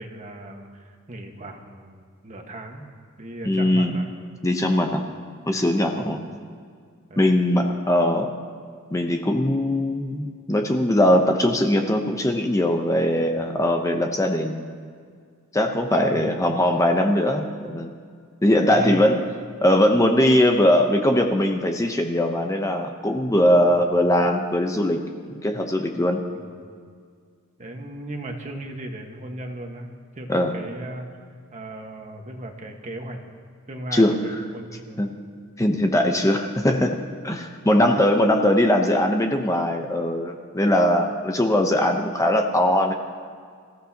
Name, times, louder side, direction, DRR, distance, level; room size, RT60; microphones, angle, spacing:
voice 1, 0.0-2.9 3.2-4.1 4.7-5.1 5.7-6.1 7.1-7.4 13.2-13.3 16.0-16.3 18.7-19.0 23.6-24.0 26.3-26.7 27.6-31.1 31.5-33.2 33.7-35.0 35.7-35.9, right 1 dB, 35° right, 3 dB, 1.5 m, -37 dB
voice 2, 3.4-3.9 4.4-5.0 5.5-6.2 7.2-8.3 8.9-14.9 15.5-17.9 18.4-19.2 19.6-25.0 25.3-26.2 30.3-30.5 33.9-34.4 35.0-35.1 35.6-37.0 37.2-42.9, left 1 dB, 15° left, 3 dB, 0.8 m, -20 dB
26.5 x 15.0 x 2.9 m, 2.1 s
head